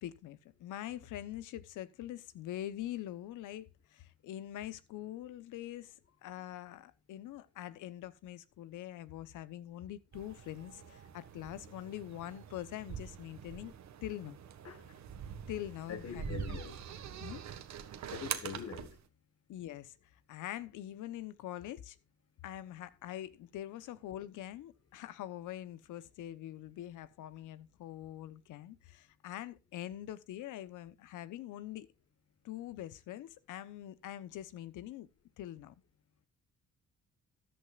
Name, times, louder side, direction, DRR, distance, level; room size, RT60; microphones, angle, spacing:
voice 1, 0.0-5.9 6.2-13.7 14.0-14.4 15.5-16.6 17.2-17.4 19.5-20.0 20.3-22.0 22.4-31.9 32.4-35.1 35.4-35.7, left 12 dB, 85° left, 1.0 m, -44 dB
sound 1, 10.1-19.0, right 8 dB, 65° right, 1.6 m, -44 dB
voice 2, 15.9-16.8 18.1-19.0, left 7 dB, 55° left, 1.4 m, -43 dB
13.5 x 11.0 x 2.5 m
cardioid pair, 90°, 30 cm